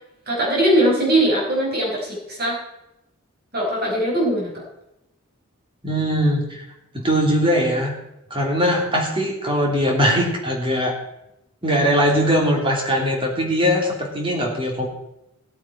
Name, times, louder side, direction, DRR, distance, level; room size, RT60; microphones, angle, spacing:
voice 1, 0.3-2.6 3.5-4.6, right 1 dB, 50° right, -4 dB, 5.1 m, -20 dB
voice 2, 5.8-6.6 6.9-7.9 8.3-11.0 11.6-14.9, equal, 25° right, 0 dB, 2.9 m, -20 dB
18.0 x 8.6 x 4.4 m, 0.87 s
head